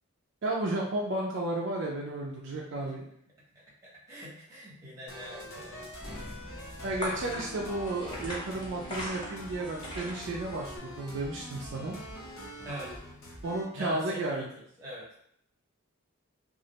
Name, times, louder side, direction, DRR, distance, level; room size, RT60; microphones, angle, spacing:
voice 1, 0.4-3.1 6.8-12.0 13.4-14.5, right 2 dB, 55° right, -2 dB, 0.3 m, -33 dB
voice 2, 3.5-5.8 9.9-10.1 12.6-12.9 13.7-15.2, equal, 15° right, -6 dB, 0.7 m, -43 dB
sound 1, 5.1-13.6, equal, 65° left, 0.7 m, -44 dB
sound 2, 5.7-10.8, left 1 dB, 20° left, 0.4 m, -41 dB
2.4 x 2.0 x 2.8 m, 0.71 s
head